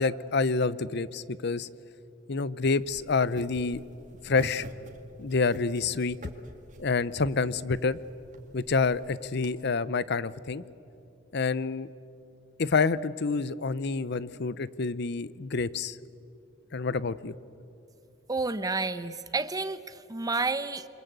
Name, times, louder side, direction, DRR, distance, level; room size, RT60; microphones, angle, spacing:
voice 1, 0.0-1.7 2.3-3.8 4.2-4.7 5.2-6.2 6.8-8.0 8.5-10.6 11.3-11.9 12.6-16.0 16.7-17.3, left 4 dB, 60° left, 17 dB, 0.7 m, -28 dB
sound 1, 2.8-9.5, right 1 dB, 40° right, 2.0 m, -48 dB
voice 2, 18.3-20.9, right 3 dB, 20° right, 12 dB, 0.9 m, -30 dB
28.5 x 25.5 x 8.1 m, 2.7 s
head